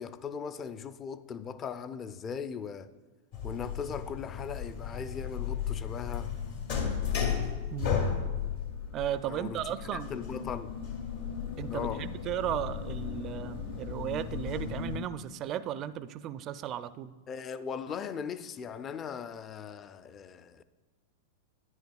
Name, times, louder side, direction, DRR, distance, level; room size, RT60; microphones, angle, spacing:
voice 1, 0.0-2.9 3.4-6.3 9.3-10.8 11.7-12.1 17.3-20.6, left 6 dB, 30° left, 0.5 m, -39 dB
sound 1, 3.3-15.0, left 7 dB, 65° left, 1.8 m, -35 dB
voice 2, 7.7-8.0 8.9-10.1 11.6-17.1, right 11 dB, 40° right, 0.4 m, -35 dB
10.5 x 10.0 x 2.3 m
hypercardioid pair, 105°, 0 cm